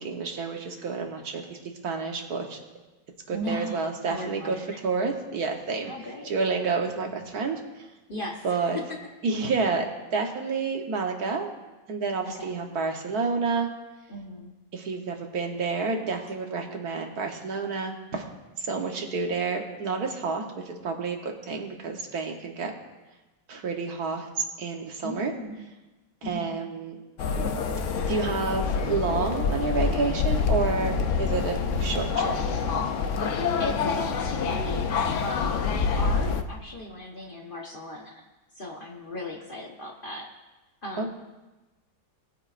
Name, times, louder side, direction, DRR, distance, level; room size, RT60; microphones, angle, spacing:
voice 1, 0.0-1.6 1.8-2.6 3.3-4.6 4.8-5.9 6.2-7.9 8.4-8.8 9.2-11.5 11.9-13.7 14.7-18.2 18.6-22.7 23.5-24.3 24.6-25.3 26.2-26.9 28.1-32.6 41.0-41.1, right 4 dB, 55° right, 3 dB, 1.5 m, -29 dB
voice 2, 3.3-4.8 5.8-6.3 8.1-9.0 12.3-12.6 14.1-14.5 25.0-25.7 26.2-26.6 33.6-38.3 38.5-40.3 40.8-41.1, left 1 dB, 35° left, 0 dB, 1.0 m, -37 dB
sound 1, 27.2-36.4, left 5 dB, 70° left, 0.7 m, -26 dB
18.5 x 8.5 x 2.5 m, 1.1 s
omnidirectional pair, 2.0 m